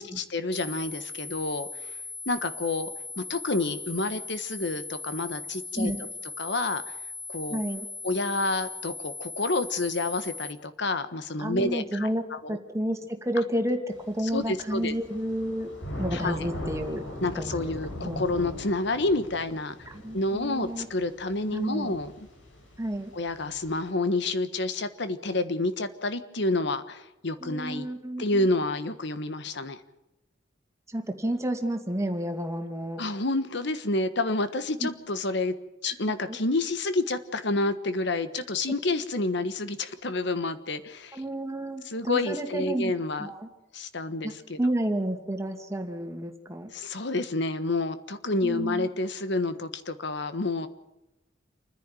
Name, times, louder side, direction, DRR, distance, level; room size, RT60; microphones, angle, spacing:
voice 1, 0.0-2.0 2.3-2.9 3.2-5.9 6.4-6.8 7.3-7.6 8.0-12.1 12.4-12.6 14.3-14.9 16.1-16.5 17.2-19.7 20.1-22.1 23.1-27.9 28.2-29.8 33.0-35.5 35.8-41.2 41.9-43.3 43.7-44.6 46.7-50.7, left 2 dB, 65° left, 12 dB, 1.4 m, -29 dB
sound 1, 0.5-10.5, left 3 dB, 25° left, 4.3 m, -39 dB
voice 2, 7.5-7.9 11.4-12.2 12.5-15.7 16.0-17.0 17.3-17.7 18.0-18.2 19.9-20.9 21.5-21.9 22.8-23.1 27.4-28.4 30.9-33.0 34.8-34.9 35.9-36.0 36.3-36.4 41.1-42.9 43.2-43.5 44.2-46.7 48.4-48.9, right 1 dB, 15° right, 5 dB, 2.3 m, -31 dB
Thunder / Rain, 13.9-23.9, equal, 90° left, 5.1 m, -41 dB
28.5 x 10.5 x 9.1 m, 0.96 s
head